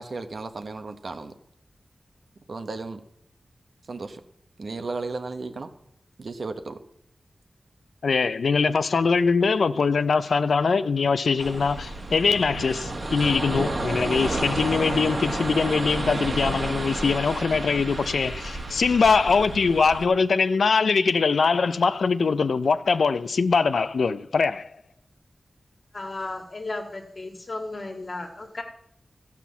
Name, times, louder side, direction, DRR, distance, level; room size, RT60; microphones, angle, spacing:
voice 1, 0.0-1.3 2.5-3.0 3.9-4.2 4.6-5.7 6.2-6.8, right 3 dB, 65° right, 0.9 m, -34 dB
voice 2, 8.0-24.7, left 5 dB, 90° left, 0.4 m, -22 dB
sound 1, 11.4-20.1, right 2 dB, 50° right, 1.6 m, -31 dB
voice 3, 25.9-28.6, left 2 dB, 45° left, 1.6 m, -34 dB
14.5 x 5.9 x 7.0 m
wide cardioid pair, 100°, 0 cm